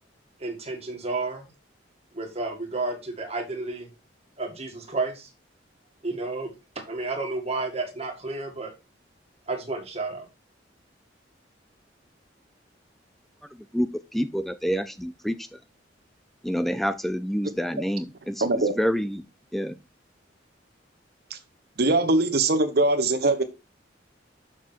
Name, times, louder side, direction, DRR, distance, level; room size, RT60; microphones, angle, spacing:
voice 1, 0.4-1.5 2.1-3.9 4.4-5.3 6.0-6.5 6.9-8.7 9.5-10.3, right 3 dB, 35° right, 2.1 m, -31 dB
voice 2, 13.7-15.4 16.4-19.2 19.5-19.7, equal, ahead, 0.4 m, -27 dB
voice 3, 18.4-18.7 21.8-23.4, right 2 dB, 55° right, 1.1 m, -21 dB
7.0 x 6.2 x 4.5 m
head